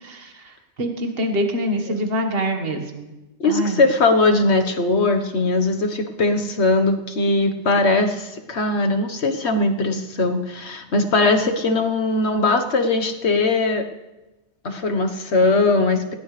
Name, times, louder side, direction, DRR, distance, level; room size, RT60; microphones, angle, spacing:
voice 1, 0.0-3.1 3.4-3.9, equal, 55° right, 4 dB, 1.8 m, -25 dB
voice 2, 3.4-13.8 14.6-16.1, left 2 dB, 65° left, 5 dB, 1.5 m, -20 dB
19.0 x 18.0 x 3.3 m, 1.0 s
omnidirectional pair, 1.2 m